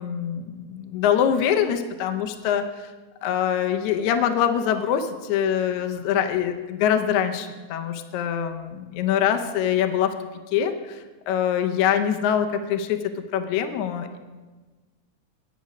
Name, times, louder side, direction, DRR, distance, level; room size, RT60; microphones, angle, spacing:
voice 1, 0.0-2.9 3.2-10.1 10.5-13.0 13.3-14.2, left 9 dB, 75° left, 7 dB, 1.8 m, -24 dB
10.5 x 8.2 x 5.3 m, 1.3 s
omnidirectional pair, 3.8 m